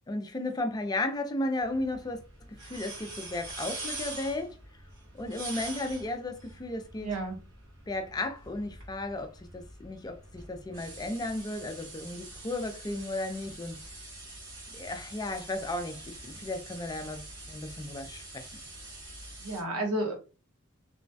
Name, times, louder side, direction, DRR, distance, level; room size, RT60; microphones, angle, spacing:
voice 1, 0.1-4.5 5.1-7.1 7.9-13.8 14.7-18.4, left 2 dB, 20° left, 0.4 m, -34 dB
sound 1, 1.6-19.6, right 2 dB, 60° right, 1.0 m, -45 dB
voice 2, 7.0-7.4 19.4-20.1, right 1 dB, 85° right, 1.0 m, -31 dB
3.0 x 2.1 x 2.6 m
head